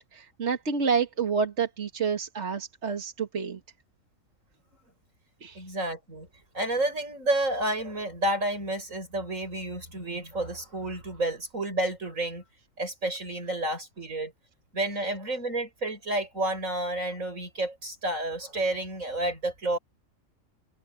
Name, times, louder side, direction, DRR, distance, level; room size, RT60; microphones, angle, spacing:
voice 1, 0.0-3.6 5.4-5.6, right 6 dB, 60° right, 2.1 m, -29 dB
voice 2, 5.5-6.3 6.5-12.4 12.8-14.3 14.7-19.8, right 1 dB, 90° right, 8.1 m, -30 dB
omnidirectional pair, 1.3 m